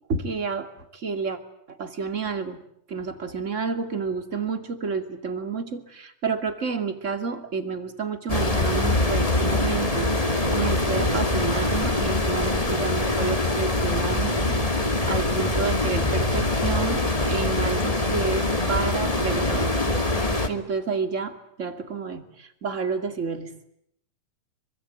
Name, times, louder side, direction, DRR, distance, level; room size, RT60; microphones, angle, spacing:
voice 1, 0.1-1.4 1.7-2.6 2.9-14.6 15.1-19.8 20.5-23.5, right 5 dB, 25° right, 8 dB, 2.4 m, -30 dB
sound 1, 8.3-20.5, left 2 dB, 15° left, 1.7 m, -24 dB
26.0 x 24.5 x 9.2 m, 0.73 s
omnidirectional pair, 3.8 m